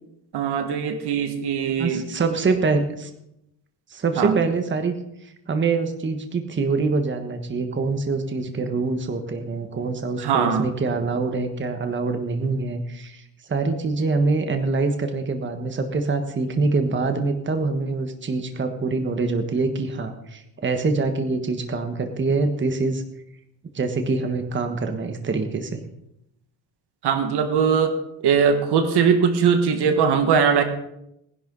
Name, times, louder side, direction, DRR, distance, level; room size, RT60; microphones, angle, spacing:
voice 1, 0.3-2.0 4.2-4.4 10.2-10.7 27.0-30.6, right 6 dB, 70° right, 7 dB, 1.8 m, -20 dB
voice 2, 1.8-3.1 3.9-4.9 5.2-23.0 23.7-25.8, right 3 dB, 25° right, 6 dB, 1.4 m, -25 dB
19.0 x 11.0 x 4.0 m, 0.81 s
cardioid pair, 125°, 41 cm